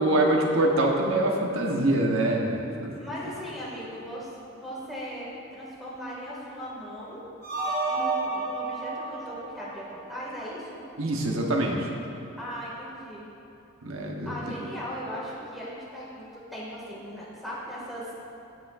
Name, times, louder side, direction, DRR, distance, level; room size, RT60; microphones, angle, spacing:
voice 1, 0.0-2.9 11.0-11.9 13.8-14.3, right 1 dB, 75° right, 0 dB, 1.1 m, -24 dB
voice 2, 3.0-7.3 7.9-10.8 12.4-13.3 14.3-18.1, equal, ahead, -7 dB, 2.1 m, -38 dB
sound 1, 7.4-10.5, right 3 dB, 50° right, 1.5 m, -31 dB
16.5 x 5.7 x 2.5 m, 2.8 s
head